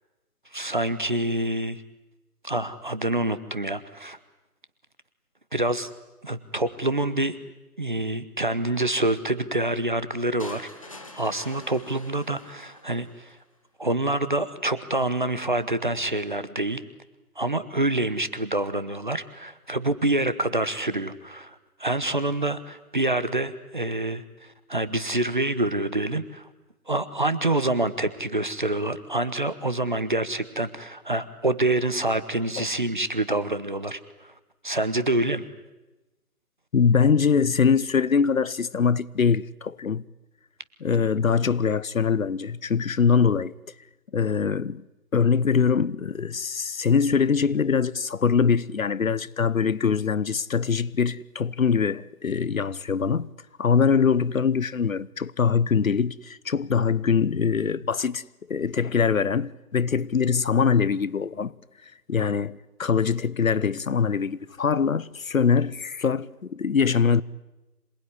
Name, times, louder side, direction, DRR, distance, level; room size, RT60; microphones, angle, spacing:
voice 1, 0.5-1.8 2.4-4.2 5.5-5.9 6.2-7.3 7.8-10.7 11.1-13.3 13.8-16.8 17.4-21.5 21.8-26.4 26.9-34.0 34.6-35.4, right 2 dB, 30° right, 1.0 m, -26 dB
sound 1, 10.4-13.4, left 2 dB, 20° left, 1.3 m, -45 dB
voice 2, 36.7-40.0 40.8-43.5 44.1-44.8 45.1-53.3 53.6-58.2 58.5-61.5 62.1-67.2, left 6 dB, 60° left, 0.8 m, -23 dB
26.5 x 19.5 x 9.9 m
hypercardioid pair, 180°, 47 cm